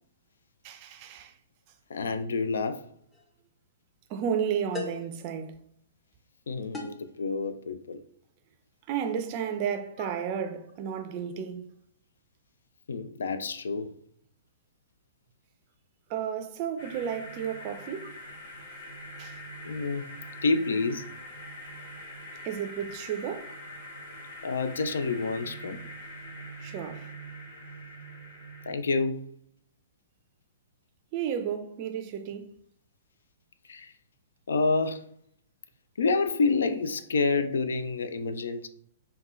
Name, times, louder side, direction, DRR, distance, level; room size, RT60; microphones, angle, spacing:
voice 1, 0.6-1.3 4.1-5.6 8.9-11.6 16.1-18.1 19.2-19.4 22.4-23.5 26.6-27.1 31.1-32.5, right 8 dB, 40° right, 0.4 m, -32 dB
voice 2, 1.9-2.8 6.5-8.0 10.0-10.1 12.9-13.9 19.6-20.1 20.4-21.1 24.4-25.8 28.7-29.3 33.7-33.9 34.5-35.0 36.0-38.7, left 4 dB, 65° left, 0.3 m, -28 dB
sound 1, 3.1-3.3 4.7-5.2 6.7-7.1, left 4 dB, 10° left, 0.6 m, -38 dB
sound 2, 16.8-28.7, equal, 50° left, 1.1 m, -43 dB
3.7 x 2.2 x 3.0 m
figure-of-eight pair, 115°, 0 cm